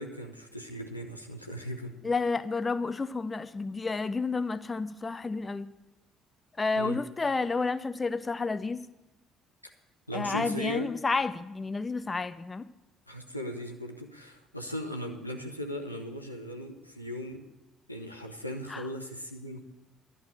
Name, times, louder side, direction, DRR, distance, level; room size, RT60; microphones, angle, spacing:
voice 1, 0.0-2.0 6.8-7.0 10.1-10.9 13.1-17.4 17.9-19.6, equal, 90° left, 2 dB, 0.7 m, -38 dB
voice 2, 2.0-5.7 6.6-8.9 10.1-12.7 18.7-18.8, left 4 dB, 25° left, 13 dB, 0.4 m, -30 dB
11.0 x 6.7 x 8.8 m, 0.99 s
figure-of-eight pair, 50°, 0 cm